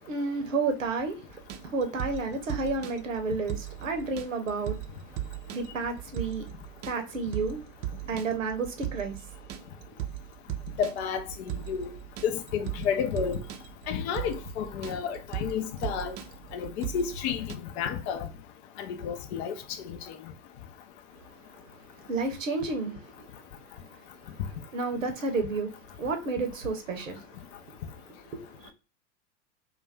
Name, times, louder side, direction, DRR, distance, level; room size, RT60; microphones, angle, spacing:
voice 1, 0.0-4.8 5.1-5.2 5.5-6.4 6.8-7.6 8.1-9.2 21.3-21.4 22.1-23.3 24.3-24.4 24.7-27.4 27.7-28.7, right 3 dB, 90° right, 0.8 m, -31 dB
sound 1, 1.3-17.5, right 12 dB, 35° right, 0.4 m, -38 dB
voice 2, 10.8-11.9 12.2-13.4 13.9-16.1 16.5-18.3 18.8-19.5 19.8-20.0, left 7 dB, 55° left, 0.5 m, -31 dB
2.4 x 2.2 x 3.4 m
hypercardioid pair, 95°, 38 cm